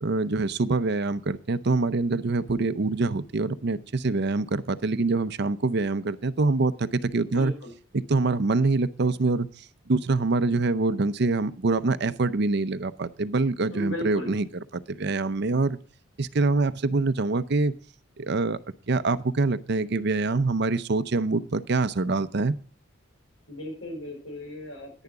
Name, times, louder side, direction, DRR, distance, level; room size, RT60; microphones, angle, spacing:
voice 1, 0.0-7.5 7.9-14.5 14.7-15.8 16.2-17.7 18.2-18.6 18.9-22.5, right 3 dB, 55° right, 14 dB, 0.6 m, -25 dB
voice 2, 7.3-7.7 13.7-14.3 23.5-25.0, left 1 dB, 80° left, 2 dB, 5.6 m, -36 dB
10.5 x 10.0 x 4.7 m, 0.39 s
head